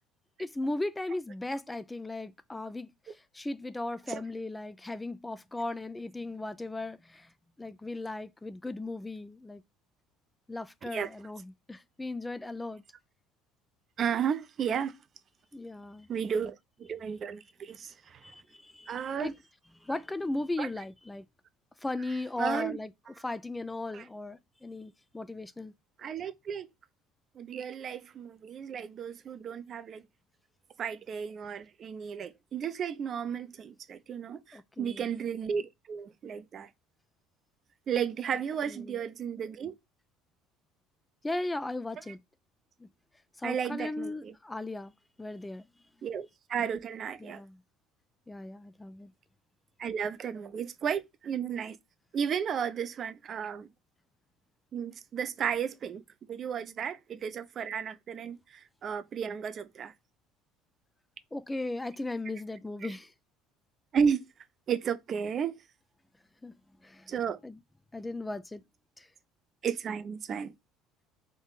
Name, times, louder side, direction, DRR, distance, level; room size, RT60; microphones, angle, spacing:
voice 1, 0.4-7.3 7.6-9.6 10.5-12.8 15.5-16.1 18.2-19.3 19.8-21.2 21.8-22.9 23.2-25.7 34.5-35.1 38.7-39.0 41.2-42.2 42.8-42.9 43.4-44.9 45.2-45.7 47.2-47.6 48.3-49.1 61.3-63.1 66.4-66.6 66.8-67.1 67.4-67.6 67.9-68.6 69.0-69.1, left 2 dB, 15° left, 0.4 m, -37 dB
voice 2, 14.0-14.9 16.1-18.2 18.9-19.3 20.6-20.7 22.4-22.8 23.9-24.0 26.0-26.7 27.4-30.0 30.8-36.7 37.9-39.7 43.4-44.3 46.0-47.4 49.8-51.8 52.1-53.7 54.7-56.0 56.3-59.9 62.8-62.9 63.9-64.2 64.7-65.6 67.1-67.4 69.6-70.5, right 7 dB, 45° right, 0.7 m, -33 dB
3.7 x 2.9 x 4.0 m
hypercardioid pair, 70°, 0 cm